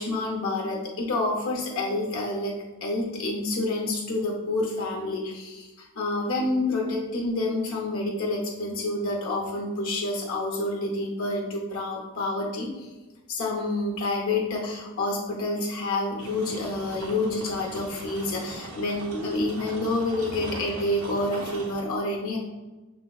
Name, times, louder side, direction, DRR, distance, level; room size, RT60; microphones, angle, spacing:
voice 1, 0.0-12.9 13.3-22.4, left 2 dB, 65° left, -1 dB, 0.7 m, -28 dB
sound 1, 16.2-21.8, right 2 dB, 80° right, 0.7 m, -41 dB
6.0 x 3.2 x 2.3 m, 1.1 s
head